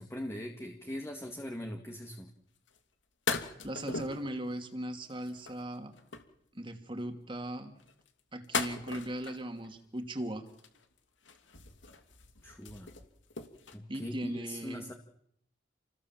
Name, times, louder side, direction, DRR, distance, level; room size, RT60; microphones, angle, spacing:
voice 1, 0.0-2.3 12.4-12.9 13.7-14.9, left 1 dB, 15° left, 3 dB, 2.2 m, -41 dB
sound 1, 2.7-2.8 3.3-4.3 5.1-6.4 7.8-9.7 10.5-11.0 11.2-13.8, left 5 dB, 80° left, 2.7 m, -38 dB
voice 2, 3.6-5.9 6.5-7.8 8.3-10.5 13.9-14.8, right 1 dB, 25° right, 6 dB, 2.8 m, -38 dB
29.5 x 20.5 x 7.6 m, 0.73 s
head